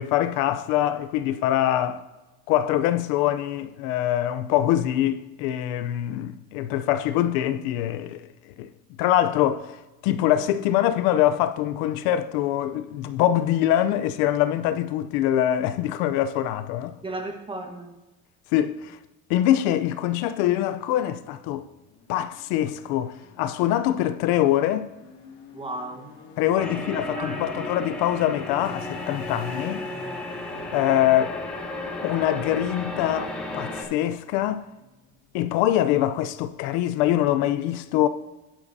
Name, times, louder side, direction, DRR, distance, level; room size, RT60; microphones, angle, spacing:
voice 1, 0.0-2.0 2.5-8.3 8.6-8.7 9.0-9.8 10.0-17.0 18.5-19.0 19.3-21.7 22.1-24.9 26.4-29.8 30.7-31.4 32.0-34.7 35.3-38.1, left 12 dB, 85° left, 0.6 m, -24 dB
voice 2, 17.0-18.0 25.5-26.1 26.6-27.7, right 2 dB, 15° right, 1.4 m, -36 dB
sound 1, 21.4-36.7, left 3 dB, 65° left, 2.3 m, -50 dB
sound 2, 26.6-33.8, left 2 dB, 5° left, 3.3 m, -34 dB
12.0 x 10.0 x 2.7 m
cardioid pair, 110°, 32 cm